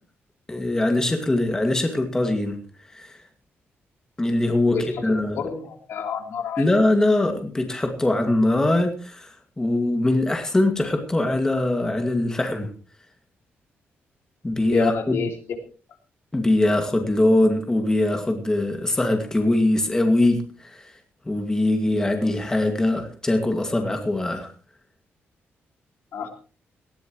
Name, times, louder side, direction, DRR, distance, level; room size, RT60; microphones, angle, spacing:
voice 1, 0.5-2.6 2.9-3.2 4.2-4.8 5.0-5.4 6.6-12.7 14.4-15.2 16.3-20.9 21.3-24.5, left 1 dB, 15° left, 5 dB, 2.3 m, -22 dB
voice 2, 4.6-6.6 14.7-15.3 26.1-26.3, left 6 dB, 70° left, 4 dB, 3.3 m, -29 dB
19.0 x 15.5 x 3.2 m, 0.37 s
wide cardioid pair, 145°, 4 cm